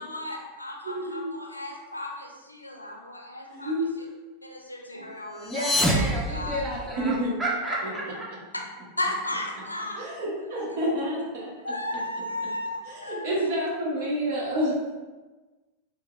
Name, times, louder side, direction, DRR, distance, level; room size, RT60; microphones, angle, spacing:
voice 1, 0.0-4.1 4.4-6.6 9.0-10.0 11.6-13.3 14.0-14.1, left 1 dB, 85° left, 0 dB, 0.5 m, -35 dB
voice 2, 0.8-1.3 3.5-3.9 7.0-7.4 10.0-11.5 12.9-14.7, equal, 55° right, -5 dB, 1.0 m, -28 dB
sound 1, 5.3-7.2, equal, 5° left, 0.5 m, -27 dB
voice 3, 5.4-8.3, right 1 dB, 15° right, -5 dB, 0.9 m, -32 dB
3.4 x 2.8 x 2.2 m, 1.2 s
figure-of-eight pair, 90°, 0 cm